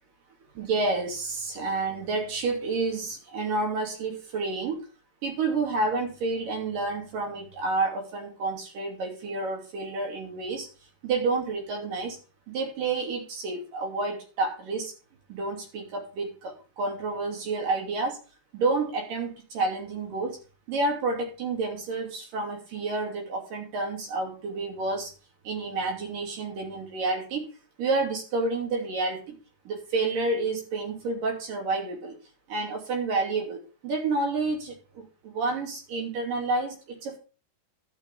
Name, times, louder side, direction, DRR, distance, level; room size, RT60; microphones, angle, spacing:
voice 1, 0.6-4.8 5.2-10.7 11.0-12.2 12.5-14.9 15.3-18.2 18.5-20.4 20.7-25.1 25.4-27.4 27.8-29.4 29.7-32.2 32.5-37.2, right 3 dB, 85° right, 1 dB, 4.5 m, -29 dB
12.0 x 6.2 x 5.3 m, 0.34 s
omnidirectional pair, 3.8 m